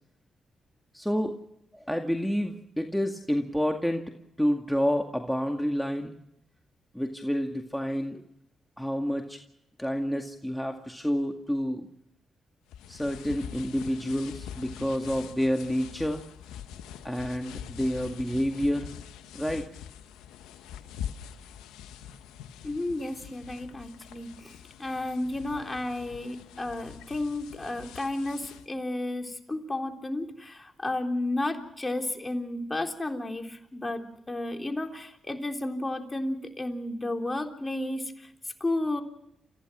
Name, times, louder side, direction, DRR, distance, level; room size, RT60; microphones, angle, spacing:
voice 1, 0.9-1.4 1.7-4.0 4.4-6.2 6.9-8.2 8.8-9.4 9.8-11.9 12.9-16.2 17.0-18.9 19.3-19.6, equal, ahead, 3 dB, 2.1 m, -29 dB
sound 1, 12.7-28.7, left 9 dB, 85° left, 1.0 m, -44 dB
voice 2, 22.6-24.5 24.8-38.3 38.6-39.0, left 2 dB, 25° left, 4 dB, 3.6 m, -32 dB
29.5 x 15.5 x 6.1 m, 0.81 s
supercardioid pair, 45°, 0 cm